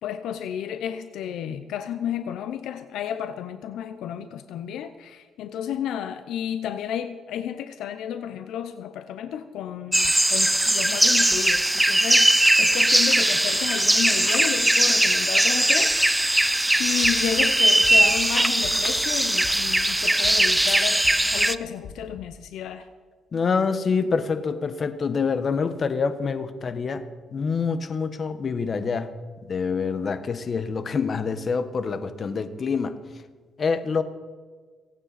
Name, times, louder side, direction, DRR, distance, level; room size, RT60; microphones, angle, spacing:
voice 1, 0.0-16.5 16.8-21.0 21.3-22.9, left 9 dB, 85° left, 10 dB, 0.7 m, -32 dB
sound 1, 9.9-21.5, right 1 dB, 10° right, 0.5 m, -20 dB
sound 2, 17.0-17.5 17.8-18.3 18.6-19.1 19.4-19.9 20.2-20.7 21.0-21.5 21.8-22.3, left 6 dB, 65° left, 1.4 m, -42 dB
voice 2, 23.3-27.1 27.3-29.1 29.5-33.0 33.6-34.0, left 5 dB, 45° left, 11 dB, 1.2 m, -26 dB
23.0 x 9.1 x 4.2 m, 1.5 s
cardioid pair, 90°, 0 cm